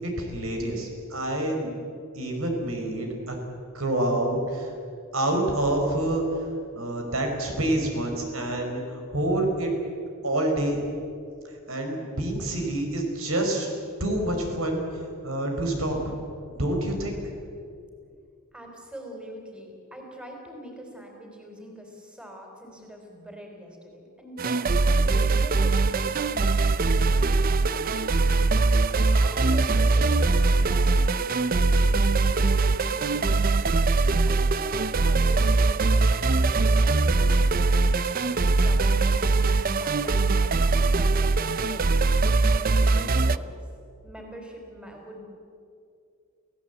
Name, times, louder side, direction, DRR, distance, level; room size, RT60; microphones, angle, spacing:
voice 1, 0.0-1.7 2.1-3.4 3.7-4.7 5.1-6.2 6.7-9.7 10.2-10.8 11.7-13.7 14.0-14.8 15.2-16.1 16.5-17.2, right 1 dB, 80° right, 2 dB, 4.9 m, -27 dB
voice 2, 18.5-27.3 27.7-28.1 29.0-33.4 34.2-37.9 38.2-40.6 40.9-41.9 42.6-43.5 44.0-45.2, equal, 5° right, 1 dB, 3.8 m, -44 dB
sound 1, 24.4-43.4, right 3 dB, 45° right, 0.6 m, -22 dB
27.5 x 17.0 x 8.2 m, 2.4 s
head